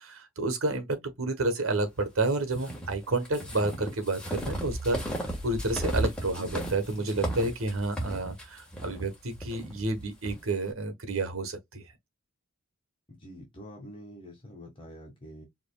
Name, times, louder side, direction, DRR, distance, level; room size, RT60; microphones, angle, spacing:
voice 1, 0.0-5.0 5.4-11.8, right 2 dB, 80° right, 1.2 m, -30 dB
sound 1, 2.5-10.4, right 1 dB, 5° left, 1.5 m, -35 dB
voice 2, 6.3-6.7 6.9-7.2 13.1-15.4, equal, 25° left, 1.4 m, -46 dB
5.0 x 3.0 x 2.3 m
head